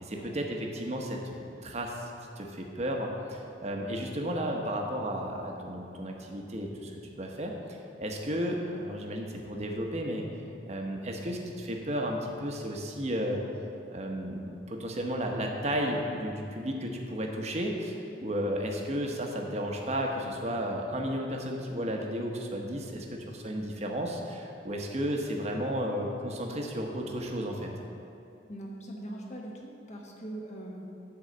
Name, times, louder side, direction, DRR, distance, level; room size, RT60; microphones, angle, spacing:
voice 1, 0.0-1.4 1.6-2.1 2.4-10.3 10.7-13.4 13.9-27.7, equal, 40° right, 1 dB, 1.0 m, -33 dB
voice 2, 28.5-30.8, right 1 dB, 40° left, -1 dB, 1.3 m, -41 dB
10.5 x 4.0 x 7.6 m, 2.7 s
head